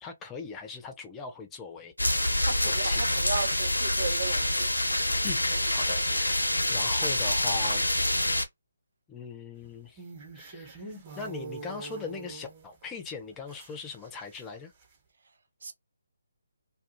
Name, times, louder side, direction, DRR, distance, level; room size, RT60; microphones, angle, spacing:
voice 1, 0.0-1.9 2.6-3.0 5.2-7.9 9.1-10.0 10.3-14.7, left 5 dB, 15° left, 0.5 m, -40 dB
sound 1, 2.0-8.5, left 1 dB, 85° left, 0.7 m, -26 dB
voice 2, 2.4-4.7 15.6-15.7, right 5 dB, 60° right, 0.7 m, -35 dB
sound 2, 9.6-12.8 13.3-14.5 14.8-14.9, right 4 dB, 25° right, 1.0 m, -44 dB
2.4 x 2.2 x 2.8 m
figure-of-eight pair, 145°, 0 cm